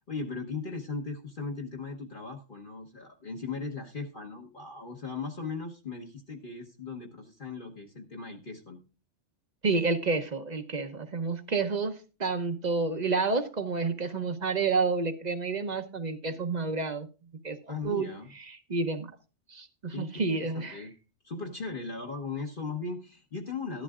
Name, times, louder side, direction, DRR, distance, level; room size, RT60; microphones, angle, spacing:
voice 1, 0.1-8.8 17.7-18.3 19.9-20.9 21.2-23.8, left 4 dB, 45° left, 0 dB, 1.3 m, -38 dB
voice 2, 9.6-17.1 17.4-18.1 18.7-19.1 19.5-20.8, right 4 dB, 40° right, 9 dB, 0.9 m, -29 dB
13.5 x 11.5 x 2.4 m, 0.32 s
omnidirectional pair, 1.2 m